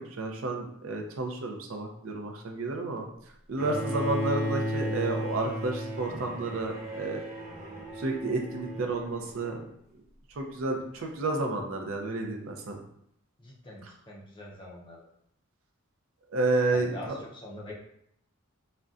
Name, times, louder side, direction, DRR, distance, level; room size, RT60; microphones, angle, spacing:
voice 1, 0.0-3.1 3.5-7.2 8.0-9.6 10.4-12.8 16.3-17.2, right 2 dB, 70° right, 2 dB, 0.5 m, -31 dB
Bowed string instrument, 3.6-9.6, equal, 40° right, 1.0 m, -35 dB
voice 2, 13.4-15.0 16.7-17.7, left 2 dB, 20° left, -3 dB, 0.5 m, -44 dB
3.8 x 2.1 x 2.4 m, 0.71 s
head